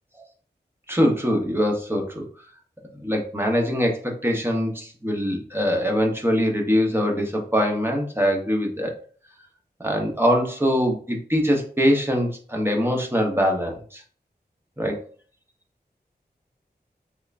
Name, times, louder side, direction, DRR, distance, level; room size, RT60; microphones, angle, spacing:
voice 1, 0.9-2.3 3.0-8.9 9.8-14.0 14.8-15.0, equal, 15° right, 1 dB, 0.8 m, -23 dB
3.5 x 3.3 x 2.4 m, 0.44 s
wide cardioid pair, 60°, 17 cm